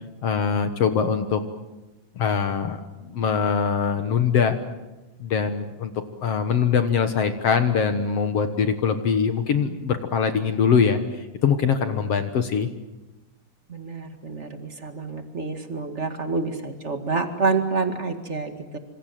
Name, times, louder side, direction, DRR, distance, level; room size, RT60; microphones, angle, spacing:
voice 1, 0.2-1.4 2.2-4.6 5.2-5.9 6.2-12.7, left 6 dB, 55° left, 8 dB, 1.9 m, -22 dB
voice 2, 13.7-18.8, right 4 dB, 30° right, 6 dB, 1.4 m, -28 dB
27.5 x 26.0 x 7.6 m, 1.1 s
omnidirectional pair, 4.0 m